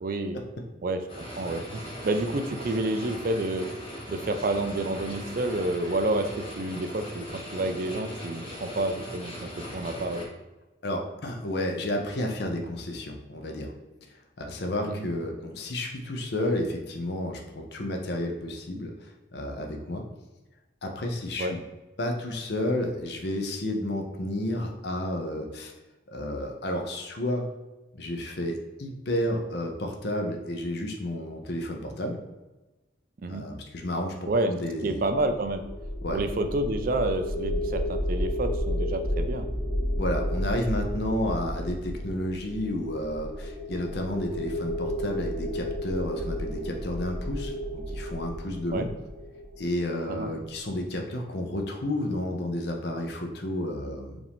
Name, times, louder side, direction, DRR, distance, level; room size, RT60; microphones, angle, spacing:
voice 1, 0.0-0.4 0.8-3.7 4.1-10.3 15.0-15.1 21.4-21.6 33.2-33.5 34.3-34.5 34.8-35.6 36.1-39.5 48.7-48.9 50.1-50.3, right 2 dB, 45° right, 7 dB, 0.4 m, -29 dB
sound 1, 1.1-10.3, equal, 30° left, 1.1 m, -39 dB
voice 2, 10.8-13.7 14.4-18.9 19.3-20.0 20.8-21.6 22.0-25.7 26.1-27.5 27.9-32.2 33.3-35.0 36.0-36.2 40.0-48.9 49.6-54.2, left 1 dB, 60° left, 2 dB, 0.6 m, -31 dB
sound 2, 35.1-50.2, equal, 15° right, 0.7 m, -32 dB
4.9 x 2.6 x 3.5 m, 1.1 s
head